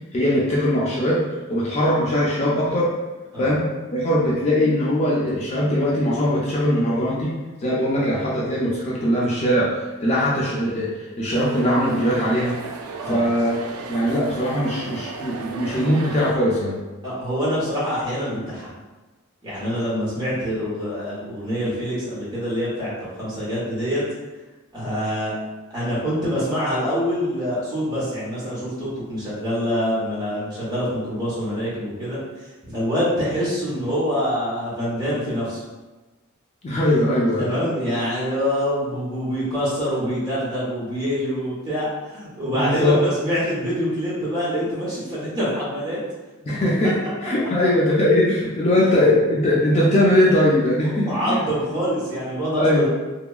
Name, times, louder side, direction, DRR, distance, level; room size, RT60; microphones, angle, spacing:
voice 1, 0.1-1.2 1.5-2.9 3.4-3.6 3.9-7.3 7.6-12.6 13.1-13.6 13.9-16.8 36.6-37.5 42.5-43.0 46.4-46.9 47.2-51.4 52.6-52.9, left 1 dB, 30° left, -6 dB, 0.3 m, -20 dB
sound 1, 11.3-16.3, right 4 dB, 85° right, 0.3 m, -35 dB
voice 2, 17.0-18.7 19.4-22.9 23.2-24.0 24.7-25.3 25.7-35.6 37.4-46.0 50.8-52.9, equal, 20° right, -9 dB, 0.9 m, -25 dB
2.8 x 2.3 x 2.3 m, 1.2 s
head